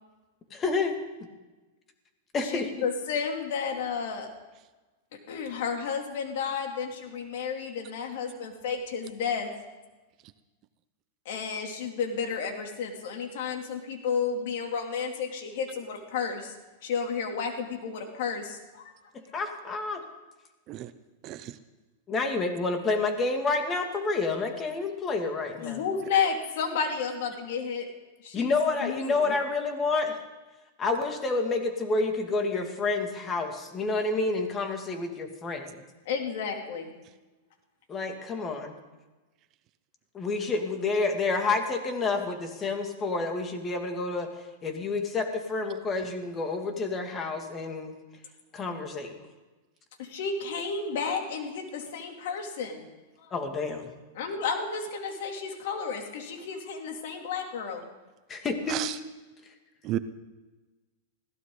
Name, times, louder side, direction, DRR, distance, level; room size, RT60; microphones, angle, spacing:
voice 1, 0.5-1.0 2.3-2.7 19.3-20.0 22.1-25.8 28.3-30.2 30.8-35.8 37.9-38.7 40.1-44.3 44.6-47.9 48.5-49.1 53.3-53.9 58.3-58.8, left 3 dB, 25° left, 4 dB, 2.3 m, -29 dB
voice 2, 2.4-4.3 5.3-9.5 11.2-16.5 16.8-18.9 25.6-27.9 28.2-28.5 28.8-29.3 36.0-36.9 50.0-52.9 53.2-53.3 54.1-57.9, left 6 dB, 65° left, 3 dB, 2.9 m, -32 dB
voice 3, 21.2-21.6 58.7-58.9 59.8-60.0, right 13 dB, 40° right, 13 dB, 0.7 m, -32 dB
21.0 x 16.5 x 4.0 m, 1.2 s
supercardioid pair, 135°, 0 cm